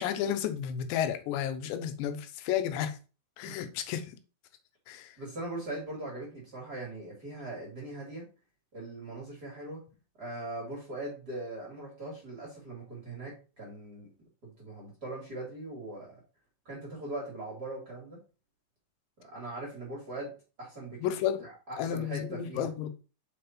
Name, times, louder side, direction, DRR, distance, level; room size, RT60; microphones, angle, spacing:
voice 1, 0.0-3.0 3.4-4.2 4.9-5.1 21.0-21.5 21.8-23.0, left 10 dB, 90° left, 3.1 m, -32 dB
voice 2, 5.2-8.2 8.7-9.8 10.2-14.1 14.4-16.1 16.6-18.2 19.2-20.3 20.6-21.0 21.4-22.7, right 2 dB, 30° right, 2.3 m, -40 dB
6.3 x 5.1 x 4.3 m
omnidirectional pair, 4.9 m